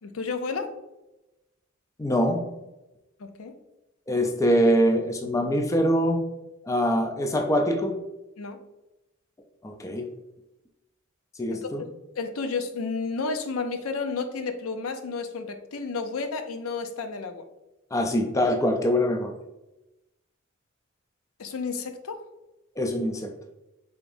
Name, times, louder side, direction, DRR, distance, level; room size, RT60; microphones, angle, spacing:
voice 1, 0.0-0.8 3.2-3.5 8.4-8.6 11.5-11.7 12.2-17.5 21.4-22.2, left 4 dB, 75° left, 7 dB, 0.5 m, -31 dB
voice 2, 2.0-2.4 4.1-6.2 6.7-8.0 9.6-10.1 11.4-11.8 17.9-19.4 22.8-23.3, equal, 15° left, 4 dB, 0.4 m, -23 dB
5.0 x 3.5 x 2.6 m, 0.97 s
head